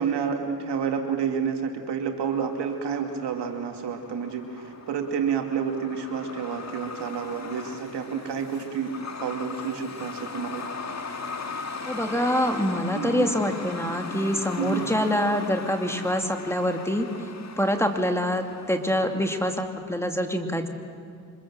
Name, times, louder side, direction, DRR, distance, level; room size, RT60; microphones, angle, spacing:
voice 1, 0.0-8.9 9.2-11.0 12.9-13.3 14.6-14.9, right 7 dB, 70° right, 4 dB, 2.5 m, -29 dB
Truck, 2.2-19.7, left 4 dB, 40° left, 2.0 m, -39 dB
voice 2, 11.9-17.1 17.6-20.7, equal, 5° left, 4 dB, 2.6 m, -25 dB
25.0 x 22.0 x 7.5 m, 2.3 s
supercardioid pair, 45°, 43 cm